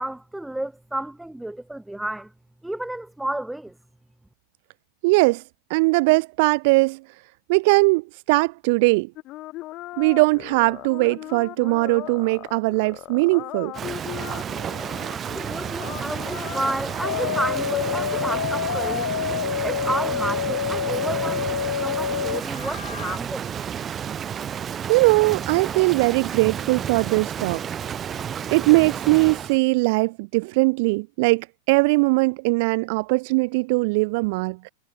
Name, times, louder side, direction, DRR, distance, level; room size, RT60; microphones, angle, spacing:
voice 1, 0.0-2.3 2.6-3.7 15.1-19.1 19.6-23.5, right 1 dB, 5° right, 2.4 m, -31 dB
voice 2, 5.0-5.4 5.7-7.0 7.5-8.0 8.3-9.1 10.0-13.7 24.9-27.6 28.5-34.7, right 27 dB, 50° right, 0.3 m, -20 dB
sound 1, 9.2-18.5, left 18 dB, 40° left, 2.5 m, -38 dB
Rain, 13.7-29.6, right 8 dB, 25° right, 2.1 m, -31 dB
sound 2, 17.0-23.2, left 8 dB, 65° left, 0.4 m, -27 dB
figure-of-eight pair, 90°, 0 cm